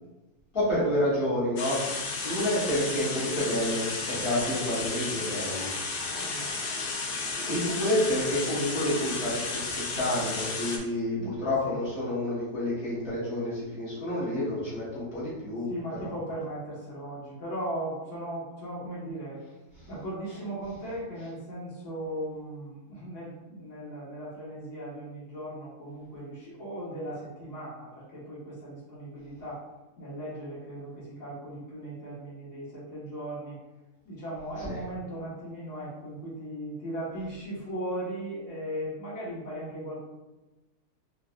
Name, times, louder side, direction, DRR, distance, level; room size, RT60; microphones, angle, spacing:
voice 1, 0.5-6.1 7.4-15.7 16.0-16.1 34.7-34.8, left 1 dB, 35° left, -10 dB, 1.7 m, -29 dB
sound 1, 1.6-10.8, left 4 dB, 60° left, 0.8 m, -33 dB
voice 2, 6.1-6.9 11.2-11.3 11.6-11.8 15.7-19.4 19.9-29.6 30.0-33.6 34.0-40.0, right 1 dB, 80° left, -9 dB, 2.2 m, -38 dB
3.9 x 3.3 x 2.5 m, 1.1 s
omnidirectional pair, 1.7 m